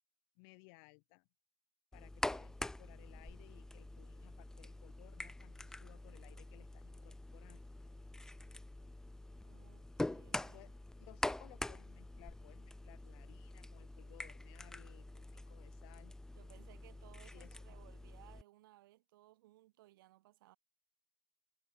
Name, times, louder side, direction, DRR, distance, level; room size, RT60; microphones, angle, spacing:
voice 1, 0.4-1.3 1.9-7.6 10.5-10.7 11.0-16.1 17.3-17.6, left 36 dB, 60° left, 2.8 m, -61 dB
sound 1, 1.9-18.4, left 2 dB, 5° left, 0.7 m, -45 dB
voice 2, 9.4-10.7 16.4-20.6, right 16 dB, 75° right, 7.4 m, -63 dB
supercardioid pair, 115°, 11 cm